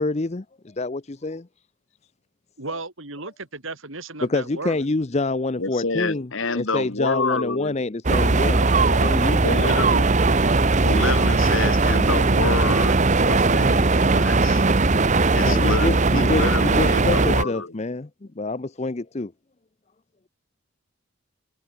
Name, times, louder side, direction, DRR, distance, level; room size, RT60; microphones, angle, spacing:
voice 1, 0.0-1.5 4.3-6.3 6.5-9.6 15.2-19.3, left 2 dB, 30° left, 0.6 m, -27 dB
voice 2, 2.6-4.8 8.6-10.1, right 3 dB, 70° right, 4.2 m, -35 dB
voice 3, 5.6-7.8 9.4-10.1 10.8-14.7 15.4-17.7, left 3 dB, 65° left, 2.0 m, -28 dB
sound 1, 8.0-17.4, right 3 dB, 35° right, 0.8 m, -19 dB
head